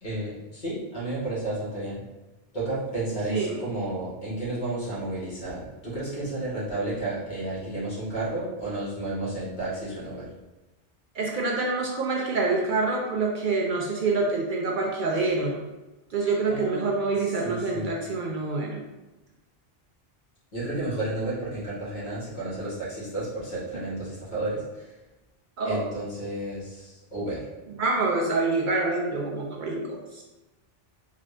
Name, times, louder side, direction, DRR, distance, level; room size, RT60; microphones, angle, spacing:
voice 1, 0.0-2.0 2.5-10.2 16.5-16.9 17.4-17.9 20.5-24.9 25.6-27.4, right 2 dB, 50° left, -8 dB, 1.5 m, -32 dB
voice 2, 3.3-3.7 11.1-15.6 16.1-18.9 25.6-25.8 27.7-30.2, right 3 dB, 60° right, -1 dB, 0.6 m, -26 dB
3.7 x 2.4 x 3.2 m, 1.1 s
omnidirectional pair, 1.0 m